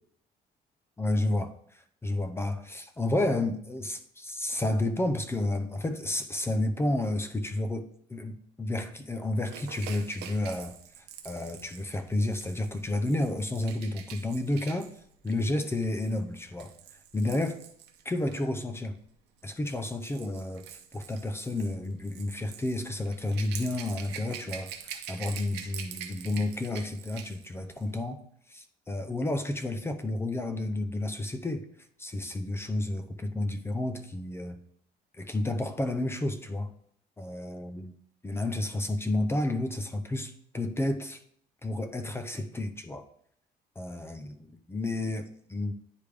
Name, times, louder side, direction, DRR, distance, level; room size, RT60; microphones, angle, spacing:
voice 1, 1.0-10.8 11.2-14.9 15.2-16.7 17.1-17.6 18.0-19.0 19.4-31.7 32.0-34.6 35.2-36.7 37.2-37.9 38.2-41.2 41.6-43.1 43.8-45.7, left 1 dB, 15° left, 8 dB, 0.5 m, -31 dB
Rattle / Rattle (instrument), 9.4-18.5 19.4-27.5 27.8-27.9, right 9 dB, 85° right, 0.8 m, -45 dB
9.8 x 3.3 x 3.3 m, 0.66 s
cardioid pair, 110°, 17 cm